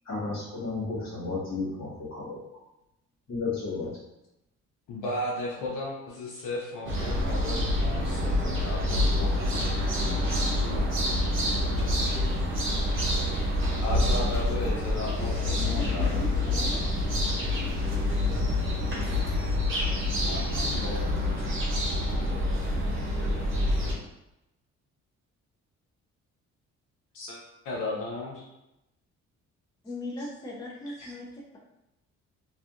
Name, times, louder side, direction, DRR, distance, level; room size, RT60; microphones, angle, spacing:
voice 1, 0.0-2.4 3.3-4.0, left 3 dB, 60° left, -6 dB, 1.5 m, -33 dB
voice 2, 4.9-9.8 10.1-10.3 10.6-11.1 11.5-11.9 13.8-16.3 20.2-21.2 27.1-27.4 27.6-28.5 31.0-31.1, left 1 dB, 85° left, -3 dB, 0.6 m, -36 dB
sound 1, 6.9-23.9, left 1 dB, 40° right, 0.7 m, -27 dB
voice 3, 15.5-17.0 29.8-31.6, left 1 dB, 10° left, -3 dB, 0.5 m, -38 dB
2.6 x 2.5 x 2.4 m, 0.90 s
cardioid pair, 90°, 30 cm